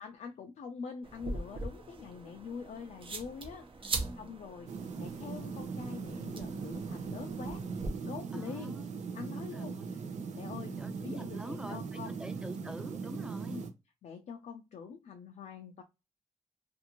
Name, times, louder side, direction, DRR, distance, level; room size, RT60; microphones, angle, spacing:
voice 1, 0.0-7.7 8.0-8.8 9.1-10.1 10.3-12.2 13.5-13.7 14.0-15.8, left 6 dB, 80° left, 0.4 m, -45 dB
sound 1, 1.0-7.9, right 3 dB, 45° right, 0.8 m, -42 dB
voice 2, 3.8-4.3 8.3-8.9 9.4-9.9 10.8-13.6, equal, 5° right, 0.5 m, -47 dB
sound 2, 4.7-13.7, right 5 dB, 80° right, 0.5 m, -40 dB
2.6 x 2.4 x 2.8 m
cardioid pair, 70°, 12 cm